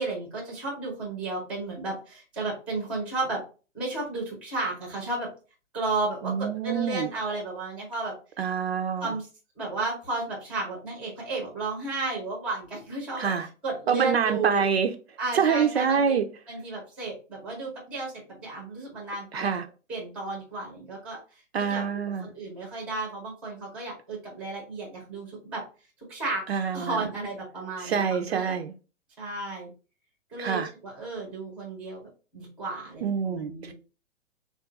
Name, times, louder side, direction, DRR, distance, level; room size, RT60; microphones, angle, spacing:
voice 1, 0.0-3.4 3.7-5.3 5.7-8.1 9.0-9.3 9.6-13.3 13.6-14.6 15.2-16.2 16.5-19.5 19.9-21.8 22.2-25.6 26.1-26.4 26.7-28.6 29.2-29.7 30.3-33.7, right 3 dB, 5° right, 0.6 m, -33 dB
voice 2, 6.2-7.1 8.4-9.1 13.2-13.5 13.9-14.9 15.3-16.3 19.3-19.6 21.5-22.3 26.5-27.0 27.8-28.7 30.4-30.7 33.0-33.7, right 7 dB, 55° right, 0.5 m, -26 dB
3.7 x 2.4 x 3.8 m
hypercardioid pair, 165°, 39 cm